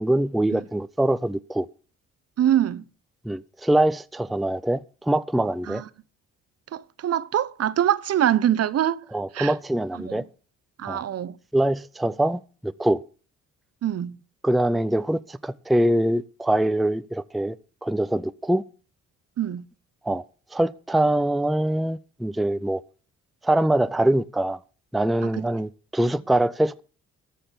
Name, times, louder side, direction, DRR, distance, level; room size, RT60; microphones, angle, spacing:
voice 1, 0.0-1.7 3.2-5.8 9.1-10.2 10.9-11.0 11.5-13.0 14.4-17.6 17.8-18.6 20.0-20.2 20.5-22.8 23.4-24.6 24.9-26.8, right 1 dB, ahead, 0.5 m, -23 dB
voice 2, 2.4-2.8 5.7-5.8 6.7-9.0 9.3-9.5 9.9-10.3 10.8-11.4 13.8-14.2 19.4-19.6 25.2-25.4, right 11 dB, 55° right, 0.8 m, -24 dB
14.0 x 5.8 x 8.2 m
cardioid pair, 90°, 30 cm